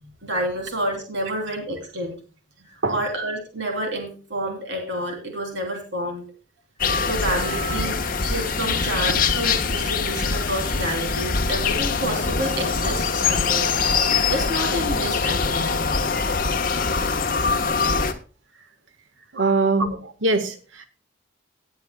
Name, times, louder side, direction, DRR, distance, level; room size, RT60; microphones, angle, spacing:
voice 1, 0.0-2.1 2.7-6.2 7.0-13.7 14.3-15.8 16.9-17.2 19.3-19.6, right 1 dB, 70° right, 2 dB, 3.2 m, -29 dB
sound 1, 6.8-18.1, left 5 dB, 45° left, 1.2 m, -23 dB
voice 2, 19.3-20.9, right 3 dB, 85° right, 9 dB, 1.5 m, -22 dB
18.5 x 9.1 x 2.3 m, 0.35 s
head